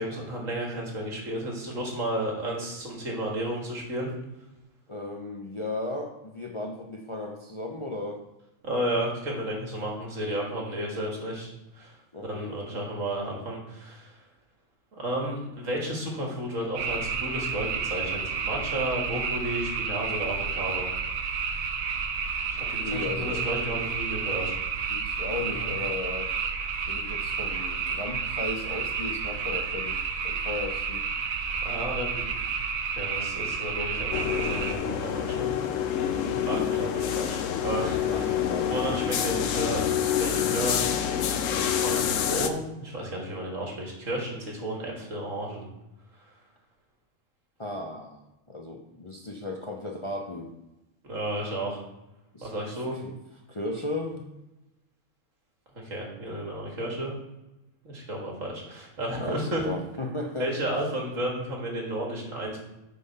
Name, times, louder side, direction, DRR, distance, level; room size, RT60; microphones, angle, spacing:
voice 1, 0.0-4.1 8.6-11.5 11.7-12.0 12.2-14.1 15.0-20.9 22.5-24.6 25.3-25.7 31.6-32.3 33.0-35.5 36.5-38.3 38.7-39.8 40.2-40.9 41.7-45.7 51.0-51.8 52.4-53.0 55.7-57.1 57.8-59.7 60.4-62.6, right 1 dB, 75° right, -1 dB, 2.2 m, -32 dB
voice 2, 4.9-8.2 12.1-12.5 22.6-23.5 24.9-26.3 26.9-31.0 36.1-36.5 38.1-38.7 47.6-48.2 48.5-50.5 52.3-52.5 52.9-53.1 53.5-54.2 59.2-60.5, left 2 dB, 30° left, 1 dB, 0.6 m, -35 dB
sound 1, 16.7-34.7, right 5 dB, 90° right, 1.2 m, -31 dB
sound 2, 34.1-42.5, left 9 dB, 70° left, 1.0 m, -27 dB
8.6 x 3.9 x 5.5 m, 0.96 s
omnidirectional pair, 1.4 m